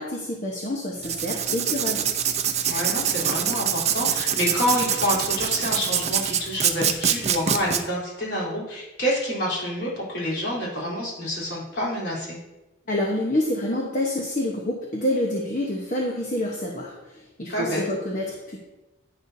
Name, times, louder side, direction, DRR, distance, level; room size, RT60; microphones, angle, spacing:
voice 1, 0.0-2.1 12.9-18.6, left 1 dB, 40° left, -1 dB, 1.1 m, -27 dB
Writing, 1.0-7.8, right 8 dB, 35° right, 0.6 m, -24 dB
voice 2, 2.7-12.4 17.5-17.8, equal, 55° left, -5 dB, 3.7 m, -27 dB
10.5 x 10.0 x 2.8 m, 1.0 s
head